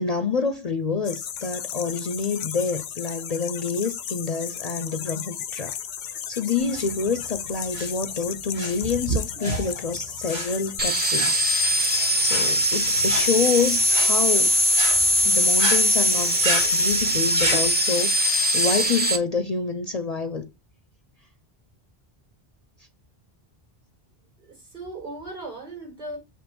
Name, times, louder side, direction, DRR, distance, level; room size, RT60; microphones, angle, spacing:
voice 1, 0.0-5.8 6.3-11.4 12.2-14.5 15.2-20.5, left 5 dB, 45° left, 0.7 m, -27 dB
sound 1, 1.0-18.8, left 9 dB, 85° left, 0.9 m, -35 dB
sound 2, 6.6-17.7, right 2 dB, 80° right, 3.3 m, -31 dB
sound 3, 10.8-19.2, equal, 10° right, 1.1 m, -21 dB
voice 2, 24.4-26.2, right 2 dB, 50° right, 5.3 m, -37 dB
7.7 x 3.3 x 6.1 m
omnidirectional pair, 1.0 m